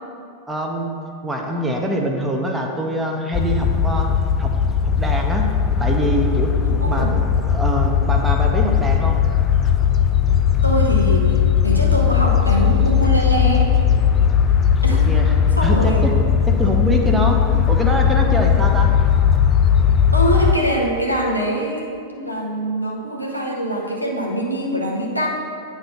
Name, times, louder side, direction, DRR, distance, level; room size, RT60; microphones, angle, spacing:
voice 1, 0.5-0.9 1.2-4.1 4.4-4.5 5.0-5.4 5.8-6.5 6.8-7.1 7.5-9.2 14.9-15.3 15.6-18.9, equal, 10° right, 1 dB, 0.8 m, -24 dB
sound 1, 3.3-20.5, left 8 dB, 25° left, 0.4 m, -17 dB
voice 2, 6.6-7.2 10.6-13.7 14.8-15.1 15.6-16.1 20.1-25.3, right 1 dB, 90° right, -2 dB, 0.9 m, -23 dB
8.8 x 3.0 x 5.6 m, 2.4 s
figure-of-eight pair, 90°, 0 cm